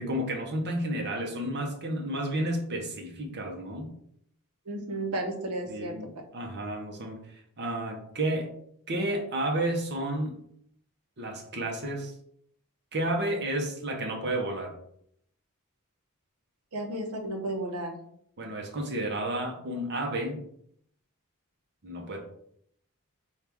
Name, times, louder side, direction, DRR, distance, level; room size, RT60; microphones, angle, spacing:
voice 1, 0.0-3.9 5.7-6.1 6.3-8.5 8.9-10.4 11.2-12.1 12.9-14.7 18.4-20.4 21.8-22.2, right 1 dB, 50° right, 1 dB, 0.8 m, -31 dB
voice 2, 4.7-6.0 16.7-18.0, right 1 dB, 75° right, 3 dB, 0.8 m, -33 dB
4.5 x 2.4 x 3.5 m, 0.69 s
head